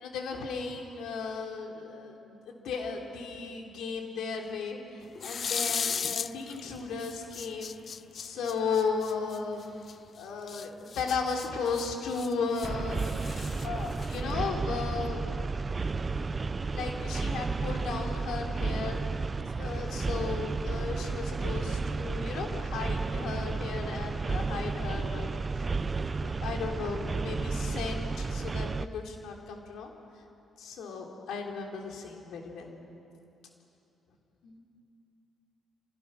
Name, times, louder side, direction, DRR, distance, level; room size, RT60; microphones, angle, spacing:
voice 1, 0.0-7.7 8.1-9.7 10.1-13.0 13.6-15.4 16.3-19.0 19.6-25.3 25.9-29.9 30.6-32.7 34.4-34.6, left 5 dB, 80° left, 1 dB, 3.3 m, -35 dB
sound 1, 5.1-6.7 7.0-9.9 10.5-12.7 13.0-14.3, left 6 dB, 50° left, 0.4 m, -36 dB
sound 2, 12.6-28.9, right 4 dB, 30° right, 0.5 m, -32 dB
26.5 x 16.5 x 6.4 m, 2.8 s
cardioid pair, 90°, 0 cm